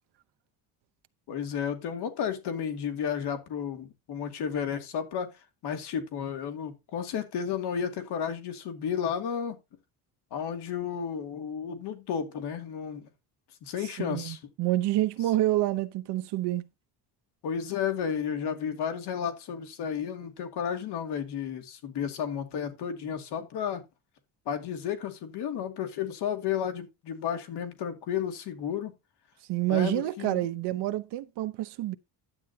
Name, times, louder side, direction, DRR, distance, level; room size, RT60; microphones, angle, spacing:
voice 1, 1.3-9.6 10.3-13.1 13.6-14.4 17.4-23.8 24.5-28.9 29.7-30.5, left 8 dB, 75° left, 2.4 m, -32 dB
voice 2, 14.0-16.6 29.5-32.0, right 15 dB, 85° right, 0.9 m, -28 dB
11.5 x 8.8 x 2.8 m
cardioid pair, 170°, 40 cm